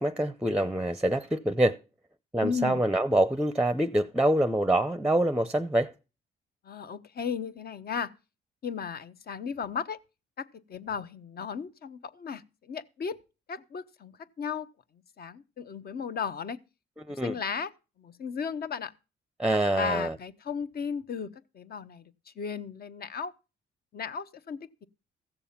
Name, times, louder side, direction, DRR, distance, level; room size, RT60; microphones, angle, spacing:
voice 1, 0.0-1.8 2.3-5.9 17.1-17.4 19.4-20.1, right 1 dB, 5° right, 0.6 m, -25 dB
voice 2, 2.4-2.8 6.6-8.1 8.6-10.0 10.4-13.2 13.5-14.7 15.2-16.6 17.2-17.7 18.0-18.9 19.7-23.3 23.9-24.9, left 6 dB, 50° left, 1.0 m, -35 dB
15.0 x 6.9 x 5.8 m
cardioid pair, 90°, 20 cm